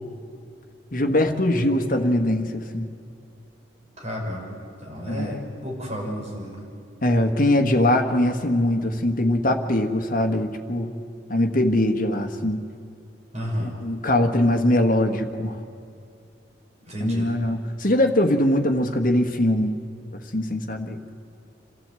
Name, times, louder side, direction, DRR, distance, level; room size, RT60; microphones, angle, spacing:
voice 1, 0.9-2.9 5.1-5.4 7.0-10.9 11.3-12.6 13.6-15.6 17.0-19.8 20.1-21.0, left 1 dB, 45° left, 4 dB, 1.5 m, -22 dB
voice 2, 4.0-4.6 4.8-6.6 13.3-13.7 16.9-17.3, equal, 35° right, -2 dB, 5.7 m, -31 dB
27.5 x 14.5 x 7.7 m, 2.4 s
head